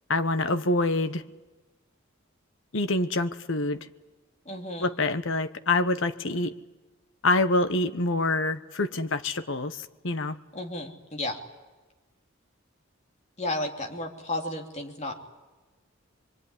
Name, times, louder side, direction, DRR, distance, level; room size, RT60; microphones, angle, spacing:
voice 1, 0.1-1.2 2.7-3.9 4.8-6.5 7.2-10.4, left 2 dB, 70° left, 10 dB, 1.1 m, -26 dB
voice 2, 4.4-4.9 10.5-11.4 13.4-15.1, left 1 dB, 35° left, 3 dB, 2.8 m, -33 dB
25.0 x 23.0 x 9.9 m, 1.2 s
head